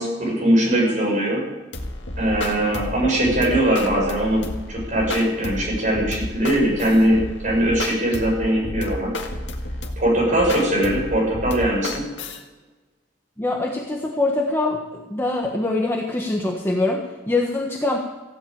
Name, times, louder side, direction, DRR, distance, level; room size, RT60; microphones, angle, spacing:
voice 1, 0.0-1.4 2.2-9.1 10.0-12.1, right 1 dB, 45° right, -2 dB, 6.3 m, -21 dB
sound 1, 1.7-12.4, left 1 dB, 75° left, 1.9 m, -31 dB
voice 2, 13.4-18.0, left 2 dB, 15° left, 0 dB, 1.3 m, -24 dB
15.5 x 8.5 x 8.7 m, 1.2 s
head